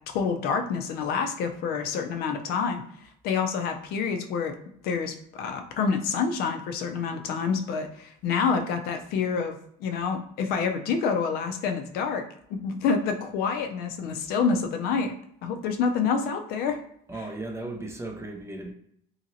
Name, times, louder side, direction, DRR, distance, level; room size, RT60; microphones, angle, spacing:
voice 1, 0.1-2.8 3.2-4.5 4.8-12.2 12.5-15.1 15.4-16.8 17.1-17.3, left 5 dB, 60° left, 6 dB, 0.5 m, -27 dB
voice 2, 17.1-18.7, right 2 dB, 15° right, 2 dB, 0.4 m, -36 dB
2.9 x 2.8 x 2.6 m, 0.68 s
cardioid pair, 130°, 18 cm